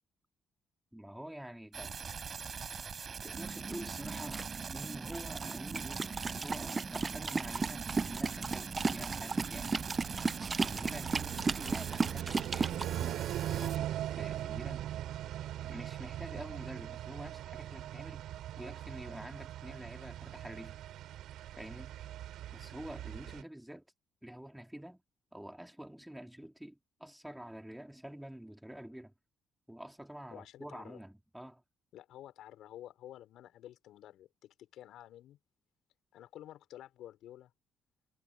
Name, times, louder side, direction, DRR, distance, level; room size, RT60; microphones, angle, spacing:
voice 1, 0.9-2.0 3.2-9.8 10.6-14.9 15.6-18.2 18.6-20.8 21.6-21.9 22.5-23.8 24.2-25.0 25.3-29.1 29.7-31.6, right 1 dB, 5° right, 4.0 m, -47 dB
sound 1, 1.7-13.8, right 6 dB, 45° right, 6.5 m, -43 dB
sound 2, 3.3-12.9, right 4 dB, 30° right, 1.0 m, -36 dB
sound 3, 6.8-23.4, right 12 dB, 80° right, 4.7 m, -41 dB
voice 2, 30.3-31.0 31.9-35.4 36.1-37.5, left 12 dB, 80° left, 5.9 m, -51 dB
cardioid pair, 90°, 0 cm